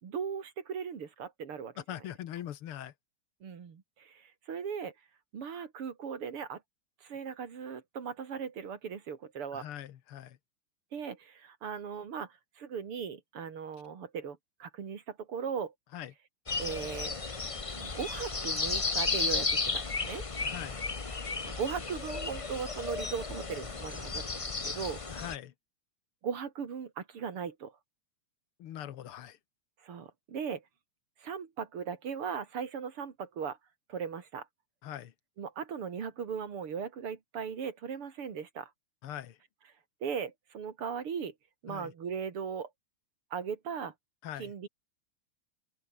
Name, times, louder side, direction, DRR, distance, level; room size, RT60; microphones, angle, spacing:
voice 1, 0.0-1.7 3.4-4.9 5.3-6.6 7.0-9.7 10.9-15.7 16.6-17.1 17.8-20.2 21.4-25.0 26.2-27.7 29.8-30.6 31.2-33.6 33.9-34.5 35.4-38.7 40.0-41.3 41.6-42.7 43.3-43.9 44.4-44.7, right 7 dB, 80° right, 3.3 m, -38 dB
voice 2, 1.9-2.9 9.5-10.4 15.9-16.1 20.4-20.8 25.1-25.5 28.6-29.4 34.8-35.1 39.0-39.4 41.7-41.9 44.2-44.5, left 11 dB, 80° left, 2.1 m, -42 dB
sound 1, 16.5-25.4, left 4 dB, 35° left, 0.5 m, -34 dB
open air
omnidirectional pair, 2.4 m